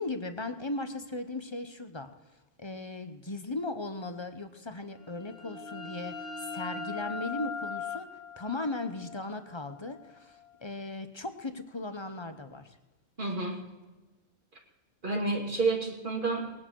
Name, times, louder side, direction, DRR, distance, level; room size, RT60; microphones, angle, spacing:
voice 1, 0.0-2.1 2.6-12.8, left 2 dB, 25° left, 8 dB, 0.7 m, -37 dB
sound 1, 5.0-10.5, left 5 dB, 55° left, 2.0 m, -41 dB
voice 2, 13.2-13.7 15.0-16.5, right 3 dB, 40° right, 0 dB, 2.6 m, -30 dB
20.0 x 10.0 x 4.6 m, 1.2 s
omnidirectional pair, 1.3 m